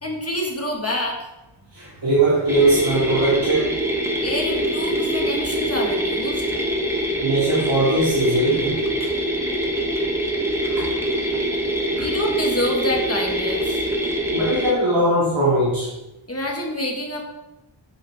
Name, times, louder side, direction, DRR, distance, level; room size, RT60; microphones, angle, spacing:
voice 1, 0.0-1.2 4.2-6.4 11.9-13.9 16.3-17.2, left 1 dB, 30° left, 0 dB, 1.6 m, -27 dB
voice 2, 1.7-3.8 7.2-8.8 10.6-10.9 12.0-12.1 14.0-15.9, right 2 dB, 65° right, -9 dB, 3.0 m, -20 dB
sound 1, 2.5-14.7, right 1 dB, 5° right, 1.2 m, -24 dB
8.9 x 7.0 x 3.5 m, 0.96 s
wide cardioid pair, 110°, 48 cm